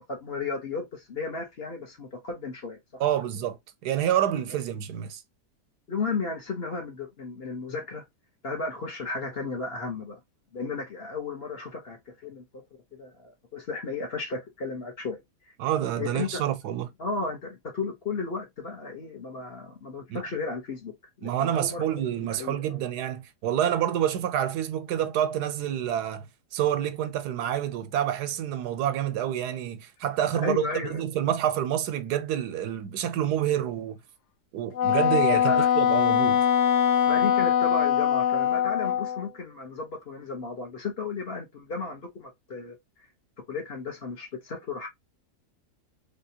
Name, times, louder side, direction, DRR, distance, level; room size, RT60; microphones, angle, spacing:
voice 1, 0.1-3.0 5.9-8.0 8.4-10.2 10.5-12.6 12.9-15.2 16.0-16.4 17.0-22.0 22.4-22.8 30.3-31.0 35.3-35.7 37.0-42.8 43.5-44.9, left 4 dB, 40° left, 1.4 m, -34 dB
voice 2, 3.0-3.6 3.8-5.2 15.6-16.9 20.1-20.2 21.2-26.2 26.5-34.0 34.5-36.5, right 10 dB, 90° right, 1.2 m, -28 dB
Wind instrument woodwind instrument, 34.8-39.2, left 9 dB, 85° left, 1.3 m, -22 dB
3.4 x 3.3 x 2.8 m
omnidirectional pair, 1.7 m